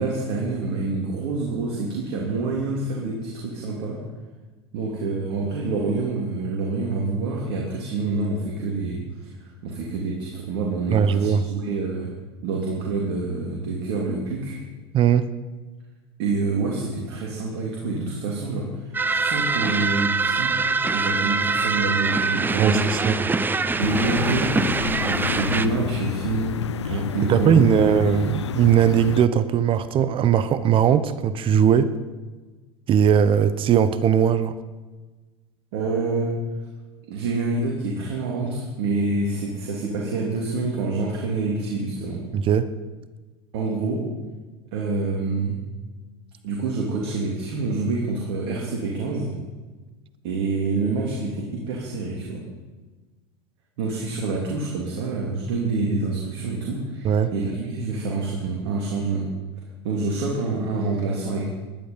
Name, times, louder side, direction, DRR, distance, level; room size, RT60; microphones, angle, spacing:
voice 1, 0.0-4.0 4.7-9.0 9.4-12.1 12.4-14.5 16.2-18.7 19.1-20.5 20.9-22.9 23.8-24.5 25.0-26.5 26.9-27.9 35.7-36.3 37.1-42.3 43.5-44.0 44.7-45.6 46.4-49.3 50.2-52.4 53.8-59.3 59.8-61.5, right 3 dB, 60° right, -2 dB, 3.2 m, -27 dB
voice 2, 10.9-11.4 14.9-15.3 22.6-23.3 26.9-31.9 32.9-34.6 42.3-42.7 57.0-57.3, right 8 dB, 40° right, 14 dB, 1.0 m, -19 dB
sound 1, 18.9-25.7, right 4 dB, 15° right, 0.7 m, -24 dB
sound 2, 23.8-29.3, left 9 dB, 85° left, 0.5 m, -29 dB
19.5 x 11.5 x 5.7 m, 1.3 s
hypercardioid pair, 85°, 14 cm